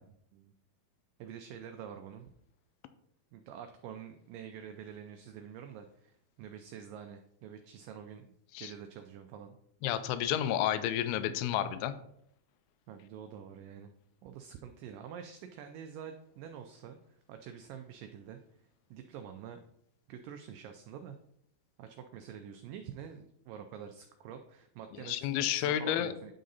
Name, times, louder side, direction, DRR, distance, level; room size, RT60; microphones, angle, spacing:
voice 1, 1.2-2.3 3.3-9.6 12.9-13.9 14.2-18.4 18.9-19.6 20.1-21.2 21.8-25.2 25.5-26.3, right 8 dB, 85° right, 6 dB, 1.9 m, -47 dB
voice 2, 9.8-11.9 25.0-26.1, left 11 dB, 85° left, 11 dB, 2.5 m, -31 dB
9.3 x 3.8 x 4.0 m, 0.72 s
omnidirectional pair, 4.4 m